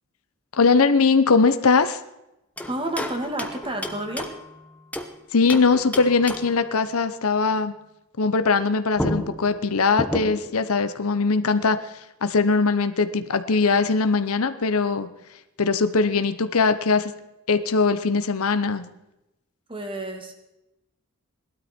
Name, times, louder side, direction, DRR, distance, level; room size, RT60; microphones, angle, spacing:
voice 1, 0.5-2.0 5.3-7.7 8.2-11.9 12.2-15.1 15.6-17.1 17.5-18.9, left 4 dB, 70° left, 10 dB, 0.8 m, -21 dB
sound 1, 2.6-5.2 5.5-6.7 8.6-8.7 9.0-10.6, equal, 5° left, 1.0 m, -32 dB
voice 2, 2.7-4.3 19.7-20.3, right 1 dB, 25° right, 4 dB, 2.0 m, -30 dB
18.5 x 12.5 x 4.4 m, 0.90 s
head